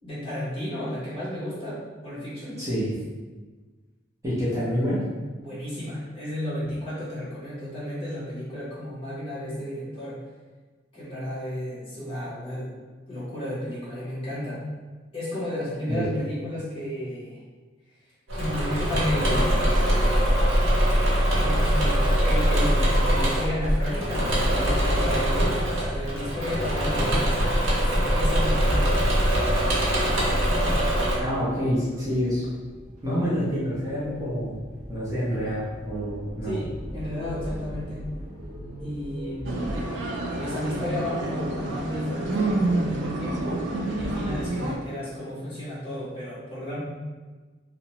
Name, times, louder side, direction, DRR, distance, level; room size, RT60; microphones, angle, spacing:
voice 1, 0.0-2.6 5.4-10.3 10.9-12.7 13.1-14.6 15.1-17.4 18.3-19.6 21.4-27.4 27.8-29.0 36.4-38.0 38.8-40.0 40.3-46.8, left 1 dB, 30° left, -9 dB, 1.1 m, -33 dB
voice 2, 2.4-2.9 4.2-5.0 15.9-16.0 31.2-32.5 33.0-34.6 34.9-36.6, equal, 15° right, -10 dB, 0.6 m, -27 dB
Engine / Mechanisms, 18.3-31.2, equal, 85° right, 0.9 m, -22 dB
sound 1, 28.6-39.8, equal, 40° right, 0.9 m, -36 dB
sound 2, 39.5-44.8, right 2 dB, 65° right, 0.4 m, -28 dB
2.7 x 2.1 x 2.9 m, 1.3 s
head